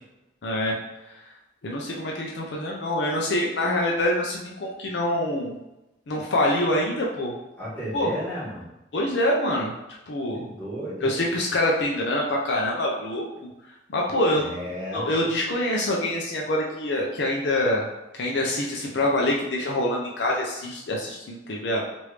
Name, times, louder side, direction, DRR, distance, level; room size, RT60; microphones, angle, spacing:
voice 1, 0.4-0.8 1.6-5.6 6.1-7.3 7.9-8.1 8.9-9.7 10.1-10.4 11.0-13.5 13.9-14.5 14.9-17.9 18.2-21.9, left 1 dB, 65° left, -2 dB, 0.5 m, -25 dB
voice 2, 7.6-8.7 10.3-11.1 14.4-15.0, equal, 10° left, -10 dB, 1.3 m, -33 dB
3.1 x 2.6 x 3.2 m, 0.97 s
head